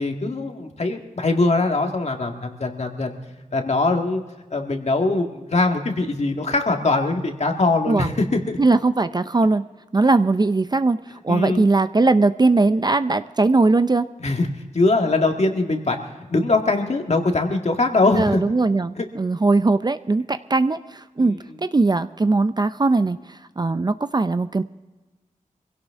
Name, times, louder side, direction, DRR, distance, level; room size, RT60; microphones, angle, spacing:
voice 1, 0.0-3.2 3.5-4.2 4.5-8.6 11.3-11.7 14.2-14.5 14.7-16.0 16.3-18.4 19.0-19.1 21.2-21.4, left 3 dB, 50° left, 4 dB, 1.7 m, -22 dB
voice 2, 8.6-9.6 9.9-11.0 11.2-14.1 18.2-21.4 21.6-24.6, right 3 dB, 30° right, 11 dB, 0.5 m, -20 dB
24.0 x 16.5 x 3.6 m, 1.2 s
wide cardioid pair, 95°, 14 cm